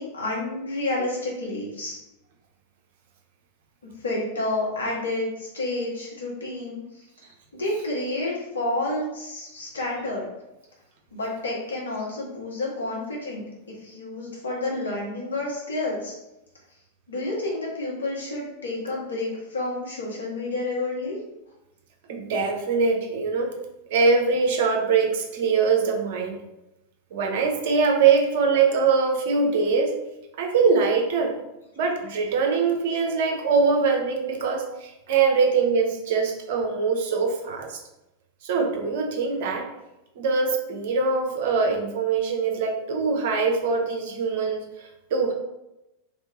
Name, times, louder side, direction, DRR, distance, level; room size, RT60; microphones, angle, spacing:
voice 1, 0.0-1.9 4.0-6.8 7.5-10.2 11.1-13.4 13.8-16.1 17.1-21.1, left 2 dB, 70° left, -4 dB, 1.5 m, -29 dB
voice 2, 22.1-23.5 23.9-26.4 27.1-29.9 30.4-31.4 31.8-37.8 38.4-39.7 40.2-45.3, right 5 dB, 50° right, 2 dB, 0.9 m, -23 dB
3.5 x 3.3 x 4.2 m, 0.91 s
figure-of-eight pair, 90°, 0 cm